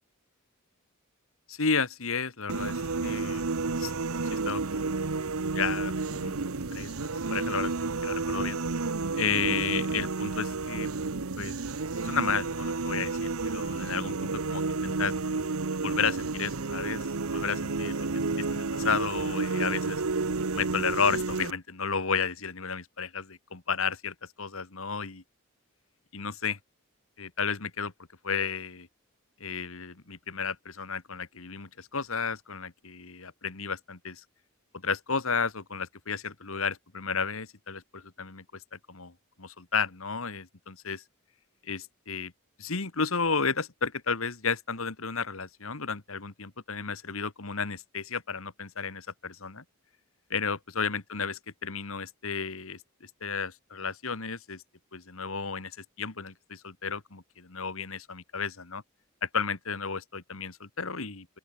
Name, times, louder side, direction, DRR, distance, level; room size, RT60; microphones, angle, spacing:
voice 1, 1.5-3.9 4.3-4.8 5.5-6.4 6.7-6.9 7.3-8.6 9.1-10.9 11.4-11.6 12.0-15.1 15.8-20.0 20.5-25.2 26.1-26.6 27.2-27.9 28.2-28.9 29.4-34.2 34.8-38.4 38.9-39.1 39.4-41.0 41.7-42.3 42.6-49.6 50.3-54.6 54.9-58.8 59.2-61.3, left 5 dB, 70° left, 1.9 m, -33 dB
sound 1, 2.5-21.5, right 3 dB, 75° right, 1.0 m, -31 dB
open air
head